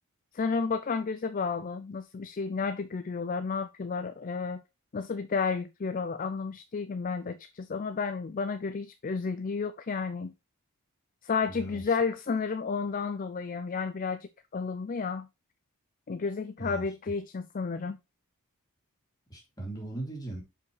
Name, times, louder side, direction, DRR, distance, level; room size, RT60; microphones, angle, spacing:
voice 1, 0.3-4.6 4.9-10.3 11.2-15.3 16.1-18.0, left 5 dB, 35° left, 0.4 m, -32 dB
voice 2, 11.5-11.8 16.6-16.9 19.3-20.4, right 2 dB, 15° left, 2.7 m, -38 dB
7.0 x 5.4 x 3.2 m
head